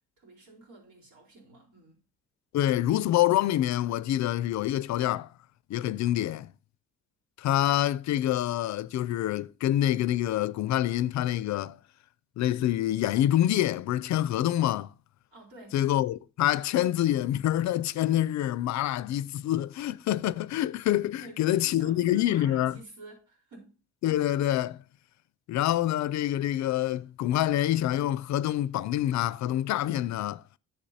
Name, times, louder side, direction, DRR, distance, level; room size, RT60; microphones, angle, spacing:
voice 1, 0.2-2.0 15.3-15.8 21.2-23.8, right 2 dB, 75° right, 4.3 m, -49 dB
voice 2, 2.5-5.3 5.7-6.5 7.4-11.8 12.4-14.9 15.7-22.8 24.0-24.8 25.5-30.4, left 13 dB, 65° left, 0.5 m, -26 dB
10.0 x 7.2 x 2.8 m
cardioid pair, 90°, 30 cm